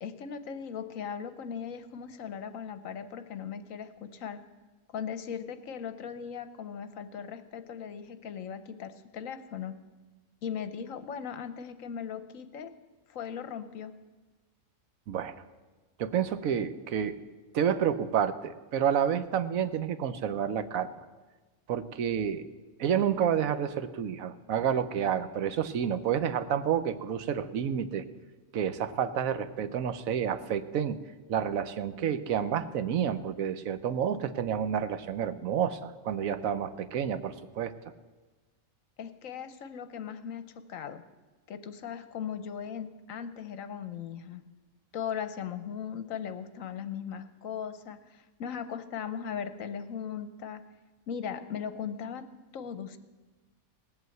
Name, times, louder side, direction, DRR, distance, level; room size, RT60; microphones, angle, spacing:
voice 1, 0.0-4.4 4.9-9.8 10.4-12.7 13.1-13.9 39.0-41.0 41.5-44.4 44.9-50.6 51.1-52.3 52.5-53.0, left 7 dB, 70° left, 11 dB, 1.2 m, -38 dB
voice 2, 16.0-17.2 17.5-20.9 21.7-22.5 22.8-28.0 28.5-31.0 31.3-37.7, right 8 dB, 75° right, 12 dB, 1.1 m, -29 dB
18.5 x 8.2 x 7.7 m, 1.3 s
omnidirectional pair, 1.5 m